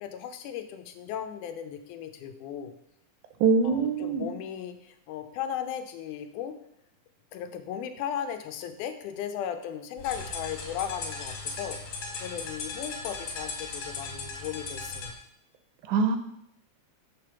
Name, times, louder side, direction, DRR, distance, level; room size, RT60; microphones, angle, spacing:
voice 1, 0.0-2.7 3.6-6.5 7.3-11.8 12.2-15.1, left 9 dB, 85° left, 8 dB, 2.1 m, -36 dB
voice 2, 3.4-4.2 15.9-16.2, right 4 dB, 80° right, 6 dB, 1.9 m, -23 dB
sound 1, 10.0-15.1, left 4 dB, 55° left, 2.2 m, -37 dB
6.7 x 3.4 x 5.9 m, 0.77 s
omnidirectional pair, 3.5 m